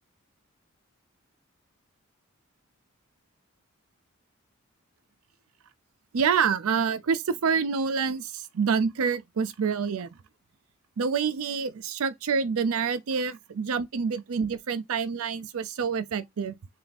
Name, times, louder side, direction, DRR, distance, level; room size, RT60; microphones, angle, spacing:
voice 1, 6.1-10.1 11.0-16.6, right 6 dB, 75° right, 0.5 m, -27 dB
3.4 x 2.5 x 4.0 m
head